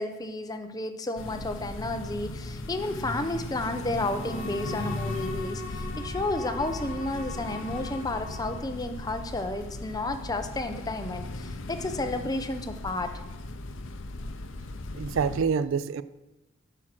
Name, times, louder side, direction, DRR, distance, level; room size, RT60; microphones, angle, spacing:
voice 1, 0.0-13.1, left 2 dB, 20° left, 0.6 m, -32 dB
sound 1, 1.2-15.4, left 2 dB, 65° left, 0.6 m, -37 dB
Bowed string instrument, 3.9-8.8, left 2 dB, 40° left, 1.3 m, -42 dB
voice 2, 14.9-16.0, right 6 dB, 70° right, 0.4 m, -26 dB
9.0 x 6.1 x 6.0 m
head